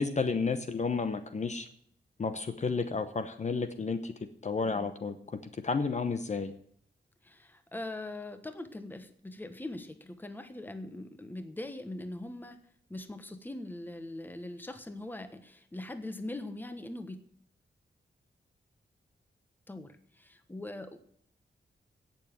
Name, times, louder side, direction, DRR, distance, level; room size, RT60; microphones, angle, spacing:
voice 1, 0.0-1.7 2.2-4.1 4.4-5.2 5.6-6.5, left 4 dB, 40° left, 9 dB, 0.9 m, -31 dB
voice 2, 7.2-12.6 12.9-17.2 19.7-21.0, left 1 dB, 10° left, 9 dB, 1.2 m, -42 dB
17.0 x 7.1 x 7.5 m, 0.66 s
wide cardioid pair, 165°, 19 cm